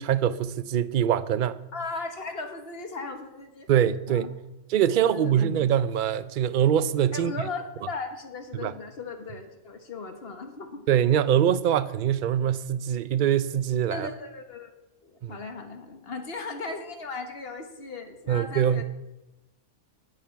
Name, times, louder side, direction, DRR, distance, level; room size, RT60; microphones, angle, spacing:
voice 1, 0.0-1.6 3.7-4.3 4.7-7.3 8.6-8.7 10.9-14.1 15.2-15.3 18.3-18.8, right 9 dB, 55° right, 0.6 m, -23 dB
voice 2, 1.7-3.7 4.1-4.3 5.1-5.5 7.1-10.9 13.9-14.7 15.0-18.8, left 4 dB, 50° left, 1.5 m, -37 dB
18.5 x 6.8 x 5.7 m
omnidirectional pair, 1.3 m